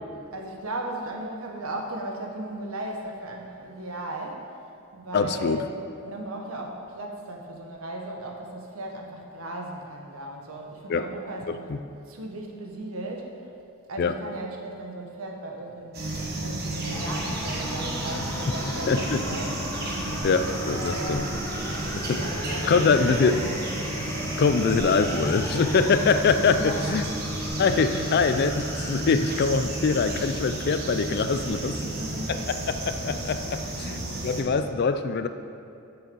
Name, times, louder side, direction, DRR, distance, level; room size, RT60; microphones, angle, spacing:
voice 1, 0.3-4.5 4.9-5.7 6.0-11.6 12.1-13.5 13.9-16.0 16.3-19.6 20.7-21.4 21.8-21.9 22.1-23.6 26.5-26.9 31.3-32.4, right 1 dB, 75° right, 1 dB, 1.2 m, -36 dB
voice 2, 5.1-5.6 10.9-11.0 11.5-11.8 14.0-14.1 18.9-19.2 20.2-21.2 22.0-22.2 22.7-23.4 24.4-27.1 27.6-31.7 32.3-35.3, left 5 dB, 50° left, 10 dB, 0.4 m, -24 dB
sound 1, 15.9-34.4, right 1 dB, 50° right, 1.3 m, -32 dB
sound 2, 16.9-29.4, left 1 dB, 15° left, 0.7 m, -38 dB
8.1 x 6.5 x 5.3 m, 2.6 s
head